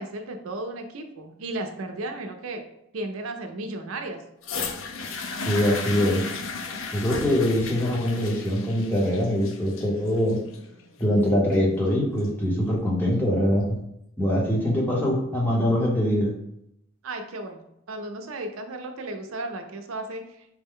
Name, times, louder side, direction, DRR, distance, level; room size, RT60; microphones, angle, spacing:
voice 1, 0.0-2.6 2.9-4.2 17.0-17.6 17.9-20.5, right 2 dB, 80° right, 5 dB, 0.5 m, -34 dB
sound 1, 4.4-12.4 13.2-13.3, left 4 dB, 65° left, 0.5 m, -35 dB
voice 2, 5.5-6.3 6.9-10.4 11.0-13.8 14.2-16.3, equal, 10° left, -3 dB, 0.8 m, -23 dB
4.5 x 2.1 x 3.6 m, 0.79 s
head